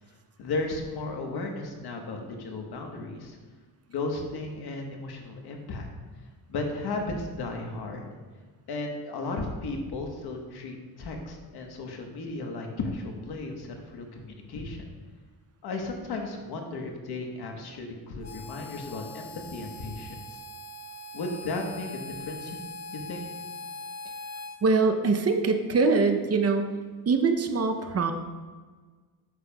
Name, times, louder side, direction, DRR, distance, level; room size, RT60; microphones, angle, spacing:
voice 1, 0.4-3.4 3.9-5.9 6.5-8.1 8.7-14.9 15.6-20.4 21.1-22.6 22.9-23.2, left 3 dB, 70° left, 3 dB, 1.3 m, -35 dB
Harmonica, 18.2-24.6, left 2 dB, 40° left, 0.8 m, -41 dB
voice 2, 24.6-26.7 27.1-28.1, right 4 dB, 40° right, 6 dB, 0.7 m, -23 dB
9.3 x 7.1 x 2.3 m, 1.4 s
cardioid pair, 100°, 40 cm